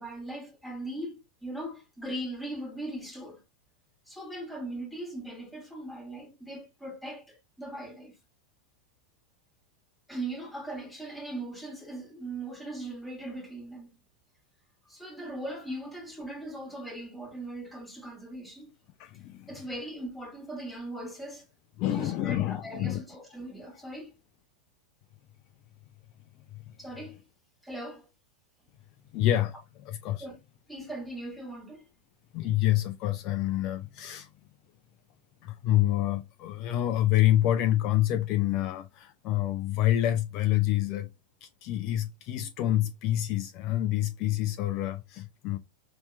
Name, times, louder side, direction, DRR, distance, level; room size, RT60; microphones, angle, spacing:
voice 1, 0.0-3.4 4.1-8.2 10.1-14.0 14.9-18.7 19.5-21.4 21.9-24.1 26.8-27.2 27.6-28.1 30.2-30.4 30.7-31.8, right 1 dB, ahead, 1.4 m, -39 dB
voice 2, 19.0-19.5 21.8-23.0 26.7-26.8 29.1-30.3 32.3-34.3 35.4-41.1 41.4-45.6, left 13 dB, 40° left, 0.3 m, -27 dB
5.3 x 2.8 x 2.2 m
figure-of-eight pair, 90°, 0 cm